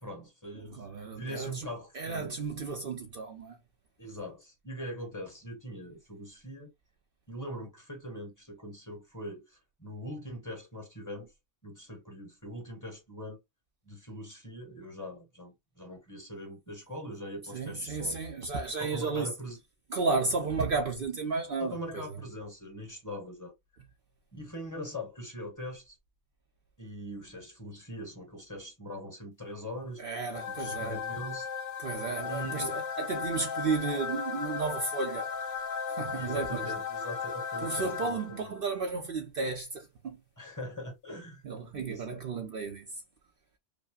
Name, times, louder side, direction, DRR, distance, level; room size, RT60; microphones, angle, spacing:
voice 1, 0.0-0.8 1.1-2.3 4.0-6.7 7.3-11.3 11.6-13.4 13.8-18.2 18.8-19.6 21.6-23.5 24.3-26.0 26.8-30.0 30.6-31.5 32.2-32.8 36.1-38.5 40.4-41.4 41.7-42.2, equal, 15° left, 1.3 m, -42 dB
voice 2, 0.5-1.7 1.9-3.6 17.5-19.3 19.9-22.0 30.0-31.0 31.8-35.3 35.9-36.7 37.6-40.2 41.4-43.0, right 4 dB, 55° right, 0.8 m, -33 dB
sound 1, 30.3-38.6, left 6 dB, 80° left, 1.0 m, -36 dB
5.2 x 2.1 x 2.3 m
omnidirectional pair, 1.2 m